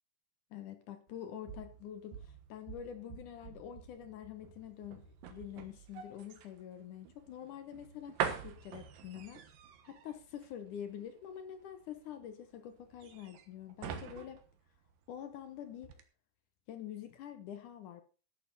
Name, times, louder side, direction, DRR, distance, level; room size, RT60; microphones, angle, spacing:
voice 1, 0.5-9.4 9.8-14.4 15.1-16.0 16.7-18.0, left 9 dB, 70° left, 2.0 m, -46 dB
sound 1, 1.1-15.5 15.8-16.0, right 8 dB, 65° right, 2.6 m, -45 dB
13.0 x 11.0 x 4.1 m
omnidirectional pair, 4.9 m